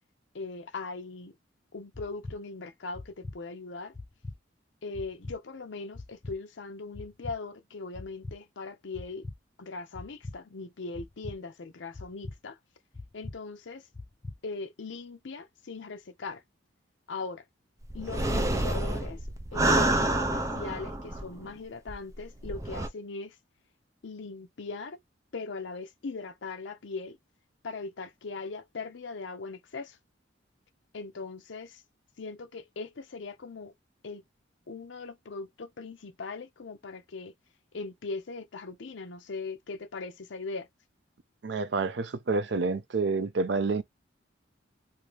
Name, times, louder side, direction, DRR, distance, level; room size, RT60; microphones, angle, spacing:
voice 1, 0.3-1.3 1.7-3.9 4.8-9.2 9.6-12.6 13.1-13.9 14.4-16.4 17.1-17.4 17.9-19.2 19.5-20.0 20.3-23.4 24.0-25.0 25.3-27.2 27.6-30.0 30.9-31.8 32.2-33.7 34.0-34.2 34.7-37.3 37.7-40.7, left 4 dB, 70° left, 0.6 m, -40 dB
sound 1, 1.9-2.4 2.9-3.4 3.9-4.4 4.9-5.4 5.9-6.4 6.9-7.4 7.9-8.4 8.9-9.4 9.9-10.4 10.9-11.4 11.9-12.4 12.9-13.4 13.9-14.4, left 2 dB, 30° left, 0.6 m, -40 dB
sound 2, 17.9-21.5 21.9-22.0 22.4-22.9, right 1 dB, 15° right, 0.5 m, -28 dB
voice 2, 41.4-43.8, right 4 dB, 65° right, 0.5 m, -28 dB
2.7 x 2.7 x 3.2 m
head